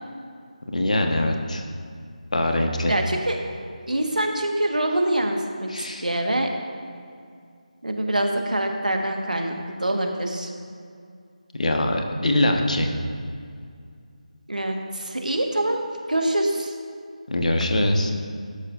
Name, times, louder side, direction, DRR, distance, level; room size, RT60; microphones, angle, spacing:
voice 1, 0.7-1.6 2.3-3.0 5.7-6.1 11.6-12.9 17.3-18.1, left 1 dB, 65° left, 3 dB, 1.4 m, -23 dB
voice 2, 2.9-3.4 3.9-5.7 6.0-6.5 7.8-10.5 14.5-16.7, right 1 dB, 85° right, 2 dB, 1.6 m, -25 dB
12.0 x 12.0 x 2.6 m, 2.3 s
figure-of-eight pair, 160°, 4 cm